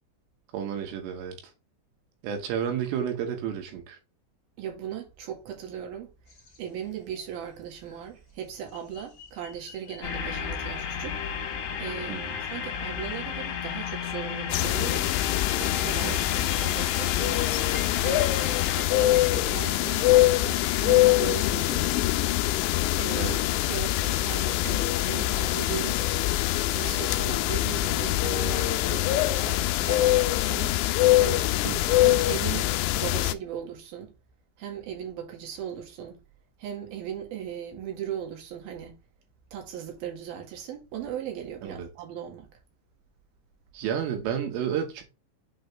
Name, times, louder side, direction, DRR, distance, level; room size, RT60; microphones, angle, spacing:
voice 1, 0.5-1.4 2.2-4.0 12.1-12.4 16.0-16.2 23.1-23.4 31.6-31.9 41.6-41.9 43.7-45.0, right 8 dB, 85° right, 4.3 m, -31 dB
voice 2, 4.6-6.1 6.6-11.2 11.8-15.1 15.6-17.4 18.0-18.4 18.8-22.0 23.0-23.3 23.7-26.0 26.7-30.8 31.2-31.5 32.0-32.7 32.9-34.1 34.6-36.2 36.6-39.0 39.5-42.5, right 9 dB, 60° right, 3.3 m, -38 dB
sound 1, 6.3-20.8, left 3 dB, 35° left, 1.3 m, -51 dB
sound 2, 10.0-18.8, left 7 dB, 65° left, 3.4 m, -34 dB
sound 3, 14.5-33.3, left 16 dB, 85° left, 2.6 m, -24 dB
8.4 x 4.1 x 3.3 m
omnidirectional pair, 5.6 m